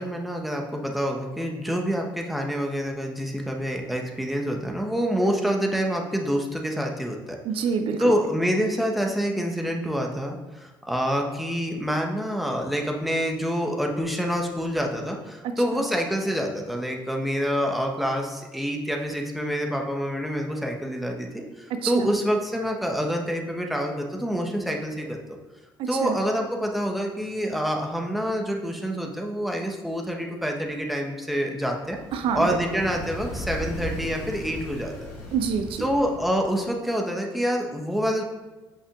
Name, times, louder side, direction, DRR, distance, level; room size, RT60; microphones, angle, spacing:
voice 1, 0.0-7.4 8.0-25.4 25.9-32.0 32.3-35.1 35.8-38.2, equal, ahead, 1 dB, 1.1 m, -27 dB
voice 2, 7.4-8.1 15.4-15.8 21.8-22.2 25.8-26.2 32.1-32.5 35.3-35.9, right 6 dB, 55° right, 7 dB, 0.5 m, -27 dB
sound 1, 31.8-36.6, left 1 dB, 70° left, 2.2 m, -37 dB
8.5 x 5.6 x 2.5 m, 1.2 s
hypercardioid pair, 50°, 11 cm